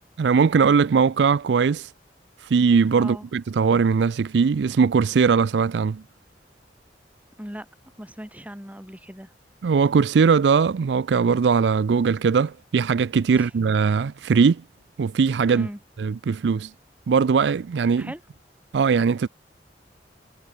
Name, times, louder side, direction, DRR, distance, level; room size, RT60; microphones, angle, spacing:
voice 1, 0.2-1.9 2.4-6.0 9.6-14.6 15.0-15.7 16.0-16.7 17.1-18.1 18.7-19.3, right 5 dB, 75° right, 0.4 m, -20 dB
voice 2, 8.0-9.3 13.3-13.5 15.5-15.8 18.0-18.2, equal, 10° right, 3.1 m, -38 dB
head